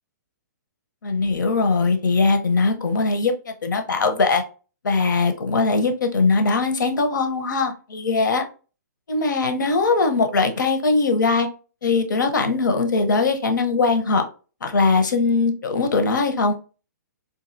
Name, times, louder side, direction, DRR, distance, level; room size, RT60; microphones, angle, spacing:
voice 1, 1.0-3.3 3.6-4.4 4.8-8.4 9.1-11.5 11.8-14.2 14.6-16.5, left 3 dB, 85° left, 6 dB, 0.8 m, -20 dB
4.0 x 2.6 x 2.6 m, 0.35 s
hypercardioid pair, 150°, 10 cm